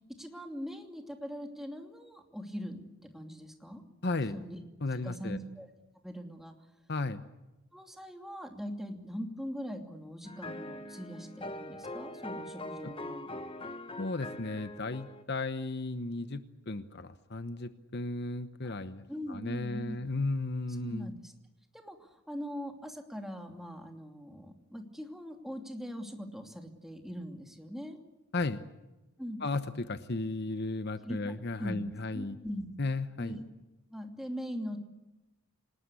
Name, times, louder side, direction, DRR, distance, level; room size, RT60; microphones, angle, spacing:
voice 1, 0.1-2.8 3.1-3.8 4.3-4.6 5.0-5.7 6.0-6.5 7.7-13.4 19.1-20.0 20.8-21.3 21.7-28.0 29.2-29.4 31.0-31.2 31.6-31.8 32.1-32.7 33.2-33.4 33.9-34.8, equal, ahead, 3 dB, 2.7 m, -41 dB
voice 2, 4.0-4.3 4.8-5.4 6.9-7.2 12.8-12.9 14.0-21.1 28.3-28.6 29.4-32.4 32.8-33.4, left 2 dB, 50° left, 11 dB, 1.0 m, -35 dB
sound 1, 10.3-15.2, left 1 dB, 25° left, 1.2 m, -42 dB
27.0 x 19.5 x 8.3 m, 1.1 s
head